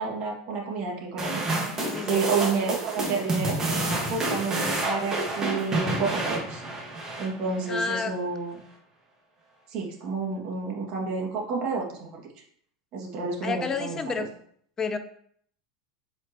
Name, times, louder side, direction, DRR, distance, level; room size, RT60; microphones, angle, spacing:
voice 1, 0.0-1.4 2.1-3.6 4.1-6.6 7.2-8.6 9.7-12.2 12.9-14.2, right 4 dB, 50° right, -2 dB, 2.2 m, -30 dB
sound 1, 1.2-7.7, right 2 dB, 20° right, 1.7 m, -29 dB
voice 2, 1.8-2.2 7.7-8.1 13.4-14.3 14.8-15.0, left 5 dB, 20° left, 10 dB, 0.6 m, -30 dB
7.7 x 4.4 x 3.0 m, 0.63 s
supercardioid pair, 130°, 2 cm